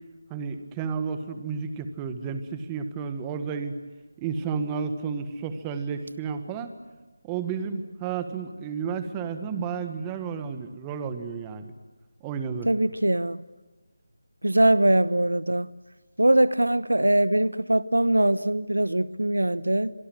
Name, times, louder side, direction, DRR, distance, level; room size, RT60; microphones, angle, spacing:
voice 1, 0.3-3.8 4.2-6.7 7.2-11.7 12.2-12.7, right 6 dB, 15° right, 9 dB, 1.6 m, -32 dB
voice 2, 12.7-13.4 14.4-15.7 16.2-19.9, right 1 dB, 90° right, 16 dB, 1.0 m, -22 dB
25.0 x 24.0 x 7.8 m, 1.2 s
figure-of-eight pair, 165°, 0 cm